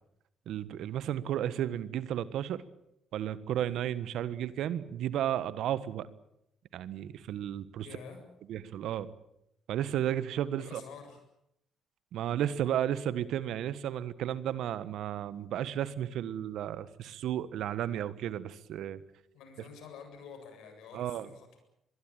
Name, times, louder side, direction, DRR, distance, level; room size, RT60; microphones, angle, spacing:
voice 1, 0.5-2.6 3.1-6.1 6.7-7.9 8.5-9.1 9.7-10.8 12.1-19.0 20.9-21.3, right 11 dB, 70° right, 16 dB, 1.4 m, -33 dB
voice 2, 7.8-8.2 10.6-11.2 19.3-21.6, left 6 dB, 75° left, 6 dB, 7.6 m, -48 dB
23.5 x 21.5 x 9.0 m, 0.77 s
hypercardioid pair, 60°, 0 cm